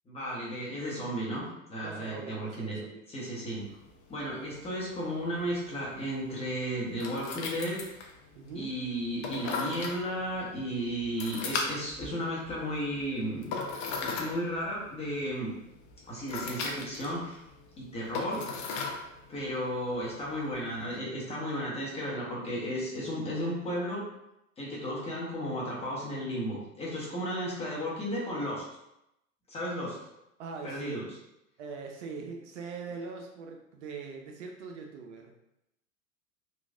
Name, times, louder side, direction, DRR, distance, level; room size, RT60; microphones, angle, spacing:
voice 1, 0.1-1.4 1.7-2.8 3.1-3.6 4.1-7.8 8.5-13.5 14.0-15.5 16.1-17.4 17.8-18.4 19.3-24.0 24.6-28.6 29.5-30.0 30.6-31.0, equal, 15° left, -6 dB, 0.9 m, -34 dB
voice 2, 1.8-3.0 8.4-8.7 30.4-31.0 31.6-35.3, right 4 dB, 60° right, 2 dB, 0.5 m, -42 dB
sound 1, 3.5-21.0, left 4 dB, 40° left, 0.5 m, -40 dB
3.1 x 2.3 x 2.3 m, 0.86 s
figure-of-eight pair, 85°, 41 cm